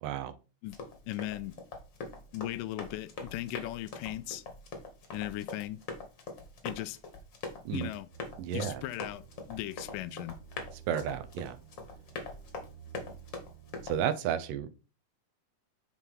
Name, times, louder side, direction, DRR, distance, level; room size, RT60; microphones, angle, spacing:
voice 1, 0.0-0.3 7.7-7.9 8.4-8.8 10.9-11.6 13.8-14.7, right 9 dB, 85° right, 2.3 m, -32 dB
Run, 0.6-14.0, left 3 dB, 50° left, 1.5 m, -43 dB
voice 2, 1.1-1.6 2.3-4.4 5.1-5.8 6.6-7.0 7.7-8.1 8.5-10.4, left 15 dB, 90° left, 2.2 m, -37 dB
sound 1, 8.1-14.0, right 9 dB, 55° right, 1.8 m, -54 dB
6.9 x 3.9 x 4.5 m
omnidirectional pair, 3.7 m